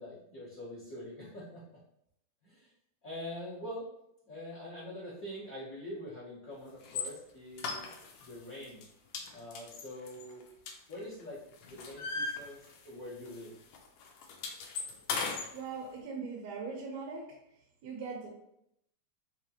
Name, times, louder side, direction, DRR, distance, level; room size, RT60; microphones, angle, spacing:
voice 1, 0.0-1.6 2.4-2.7 3.0-3.9 4.3-7.8 8.2-8.8 9.3-10.4 10.9-11.4 11.7-13.5, left 1 dB, 50° left, -10 dB, 1.0 m, -44 dB
sound 1, 6.8-7.1 7.6-8.3 8.6-8.9 9.1-11.2 11.5-13.0 13.3-13.5 13.7-15.5, left 4 dB, 80° left, 1.7 m, -37 dB
voice 2, 15.5-17.2 17.8-18.3, right 5 dB, 75° right, -3 dB, 2.0 m, -40 dB
5.1 x 3.2 x 2.8 m, 0.79 s
omnidirectional pair, 3.5 m